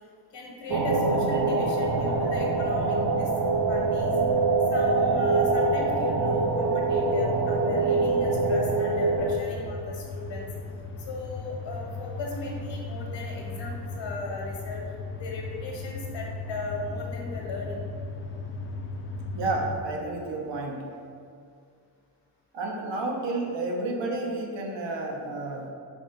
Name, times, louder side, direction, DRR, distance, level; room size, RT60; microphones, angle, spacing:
voice 1, 0.3-3.3 3.7-4.1 4.7-10.5 11.1-14.8 15.2-17.9, left 2 dB, 80° left, -1 dB, 1.4 m, -37 dB
sound 1, 0.7-9.4, right 3 dB, 45° right, 0.5 m, -24 dB
sound 2, 1.9-19.8, left 3 dB, 30° left, 0.5 m, -37 dB
voice 2, 19.3-21.0 22.5-25.7, right 2 dB, 75° right, 0 dB, 1.1 m, -31 dB
5.0 x 3.7 x 5.2 m, 2.3 s
wide cardioid pair, 140°, 44 cm